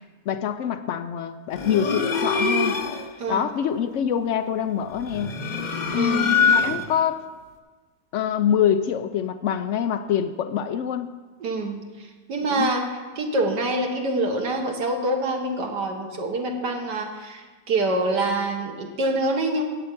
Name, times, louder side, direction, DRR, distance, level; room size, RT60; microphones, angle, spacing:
voice 1, 0.3-2.8 3.3-5.3 5.9-7.2 8.1-11.1 12.5-12.8, left 8 dB, 80° left, 10 dB, 0.6 m, -25 dB
sound 1, 1.5-3.1 5.0-7.0, left 5 dB, 40° left, 0.6 m, -24 dB
voice 2, 3.2-3.5 5.9-6.4 11.4-12.9 13.2-19.6, right 2 dB, 75° right, 3 dB, 2.0 m, -26 dB
8.8 x 7.8 x 8.4 m, 1.3 s
omnidirectional pair, 1.8 m